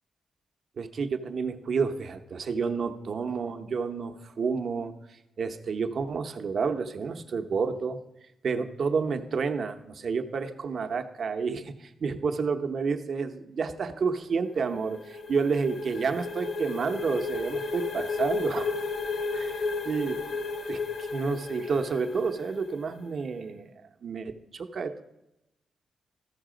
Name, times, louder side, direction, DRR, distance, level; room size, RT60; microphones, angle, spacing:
voice 1, 0.8-4.9 5.4-8.0 8.4-18.7 19.3-19.5 19.9-20.2 20.7-23.7 24.0-25.0, right 5 dB, 55° right, 7 dB, 0.7 m, -30 dB
sound 1, 14.4-23.1, left 4 dB, 55° left, 0.8 m, -33 dB
13.5 x 5.6 x 5.0 m, 0.91 s
wide cardioid pair, 130°, 0 cm